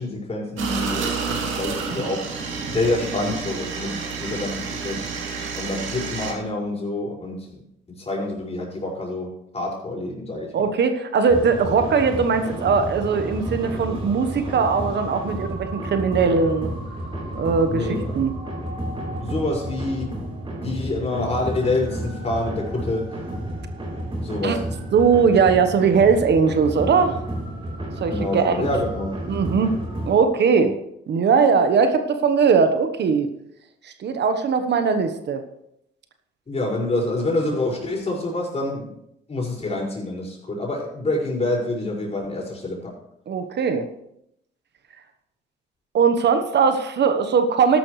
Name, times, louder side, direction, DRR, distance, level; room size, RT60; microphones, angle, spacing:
voice 1, 0.0-2.3 2.7-5.0 5.6-7.6 7.9-10.7 17.7-18.2 19.2-20.2 20.6-23.2 24.2-24.6 28.1-29.2 30.5-30.7 36.5-38.9 39.3-42.9, left 2 dB, 30° left, -3 dB, 5.7 m, -27 dB
sound 1, 0.6-6.3, right 5 dB, 80° right, 2.6 m, -29 dB
voice 2, 10.5-16.7 17.3-17.8 18.1-18.3 24.4-24.6 24.9-27.2 28.0-28.7 29.3-29.8 30.1-30.7 31.1-33.3 33.8-35.4 43.3-43.9 45.9-47.8, right 5 dB, 60° right, 8 dB, 1.2 m, -20 dB
sound 2, 11.3-30.1, right 1 dB, 25° right, 4.0 m, -31 dB
13.5 x 11.5 x 3.3 m, 0.78 s
cardioid pair, 90°, 20 cm